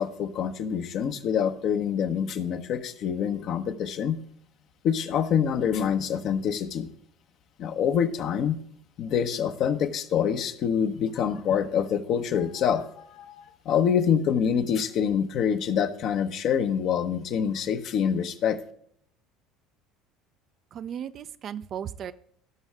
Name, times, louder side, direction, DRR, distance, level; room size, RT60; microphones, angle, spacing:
voice 1, 0.0-4.2 4.8-6.9 7.6-8.6 9.0-18.6, left 8 dB, 55° left, 8 dB, 1.0 m, -26 dB
voice 2, 20.7-22.1, right 9 dB, 45° right, 12 dB, 0.6 m, -36 dB
16.5 x 6.4 x 3.5 m, 0.66 s
hypercardioid pair, 65°, 0 cm